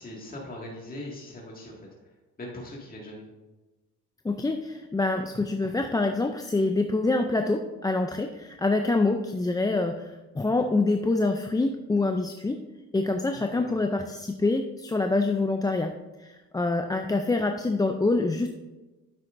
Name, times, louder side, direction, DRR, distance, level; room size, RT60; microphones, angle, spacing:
voice 1, 0.0-1.9 2.4-3.2 13.3-13.8, left 1 dB, 30° left, -2 dB, 2.0 m, -40 dB
voice 2, 4.2-12.6 12.9-15.9 16.2-18.5, left 2 dB, 15° left, 5 dB, 0.4 m, -26 dB
9.6 x 7.5 x 2.6 m, 1.1 s
cardioid pair, 90°, 30 cm